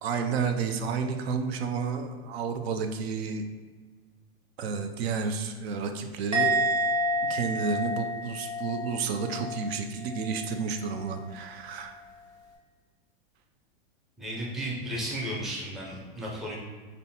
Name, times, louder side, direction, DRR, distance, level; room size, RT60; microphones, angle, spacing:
voice 1, 0.0-3.5 4.6-6.7 7.3-12.0, right 5 dB, 70° right, 6 dB, 0.6 m, -31 dB
Musical instrument, 6.3-9.7 10.0-10.4, equal, 20° right, 0.8 m, -29 dB
voice 2, 14.2-16.6, right 1 dB, ahead, -4 dB, 0.5 m, -34 dB
5.4 x 2.1 x 4.1 m, 1.5 s
supercardioid pair, 145°, 32 cm